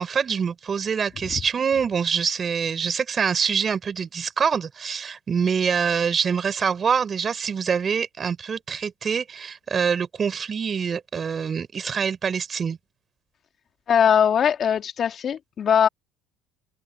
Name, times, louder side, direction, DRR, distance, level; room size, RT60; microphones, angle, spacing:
voice 1, 0.0-12.8, right 6 dB, 35° right, 5.1 m, -25 dB
voice 2, 13.9-15.9, left 8 dB, 45° left, 2.6 m, -20 dB
supercardioid pair, 90°, 0 cm